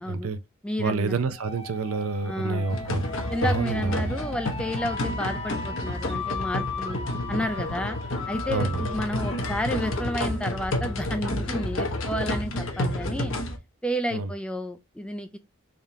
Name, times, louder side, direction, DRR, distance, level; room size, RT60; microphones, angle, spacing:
voice 1, 0.1-0.4 0.8-3.0 3.4-4.1 8.5-8.9 14.1-14.3, right 4 dB, 80° right, 0.5 m, -28 dB
voice 2, 0.6-1.2 2.2-2.7 3.3-7.0 7.3-8.0 8.3-13.3 13.8-15.4, equal, 5° left, 0.3 m, -31 dB
sound 1, 1.3-11.0, left 4 dB, 30° left, 0.8 m, -38 dB
sound 2, 2.7-13.6, left 1 dB, 65° left, 0.8 m, -30 dB
3.6 x 3.6 x 2.7 m
head